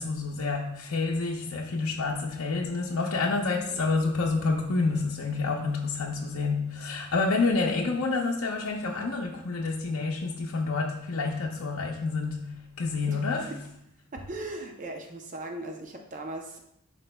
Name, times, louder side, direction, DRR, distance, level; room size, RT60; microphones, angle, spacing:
voice 1, 0.0-13.5, left 3 dB, 75° left, -1 dB, 0.6 m, -28 dB
voice 2, 14.1-16.6, right 2 dB, 35° right, 3 dB, 0.6 m, -38 dB
11.0 x 4.6 x 2.2 m, 0.77 s
head